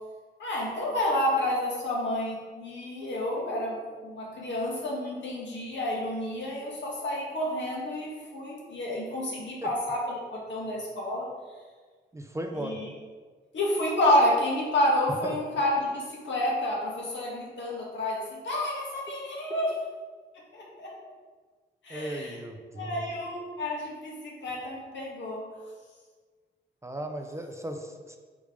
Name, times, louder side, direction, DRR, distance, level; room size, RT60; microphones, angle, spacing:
voice 1, 0.4-11.3 12.6-12.9 13.5-19.7 20.5-20.9 21.8-22.4 22.8-25.5, left 1 dB, 75° left, -3 dB, 2.0 m, -29 dB
voice 2, 12.1-12.8 15.2-15.4 21.9-23.1 26.8-28.2, right 1 dB, 15° right, 4 dB, 0.5 m, -36 dB
5.1 x 4.9 x 5.1 m, 1.5 s
wide cardioid pair, 130°, 19 cm